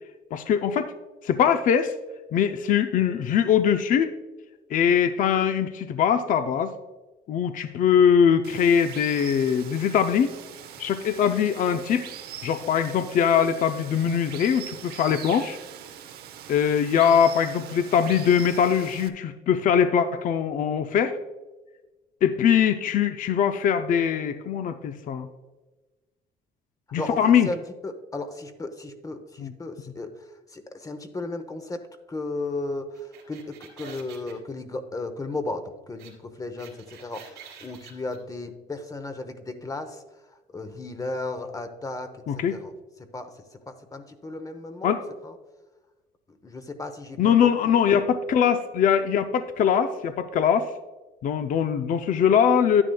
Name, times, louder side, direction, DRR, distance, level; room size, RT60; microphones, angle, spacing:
voice 1, 0.3-0.9 1.2-2.0 2.3-4.1 4.7-6.7 7.3-10.3 10.8-12.1 12.4-15.6 16.5-21.2 22.2-25.3 26.9-27.5 29.4-29.5 42.3-42.6 44.8-45.0 47.2-50.7 51.2-52.8, left 8 dB, 50° left, 9 dB, 0.5 m, -22 dB
Water, 8.4-19.1, right 10 dB, 70° right, 0.8 m, -42 dB
voice 2, 27.0-31.8 32.1-40.0 40.5-42.7 43.1-45.0 45.2-45.4 46.3-47.5, left 2 dB, 20° left, 8 dB, 0.8 m, -35 dB
sound 1, 32.9-34.3 36.0-36.1 36.4-38.2, right 8 dB, 90° right, 3.0 m, -47 dB
11.0 x 9.7 x 2.3 m, 1.2 s
cardioid pair, 110°, 17 cm